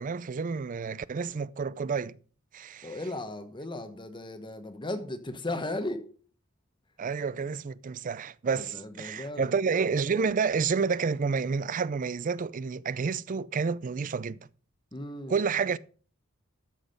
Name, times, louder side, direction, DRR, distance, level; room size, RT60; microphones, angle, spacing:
voice 1, 0.0-2.2 2.5-3.0 7.0-14.4 15.3-15.8, right 5 dB, 40° right, 0.4 m, -29 dB
voice 2, 2.8-6.0 8.5-9.5 14.9-15.3, left 1 dB, 20° left, 0.9 m, -36 dB
13.0 x 6.2 x 5.1 m
head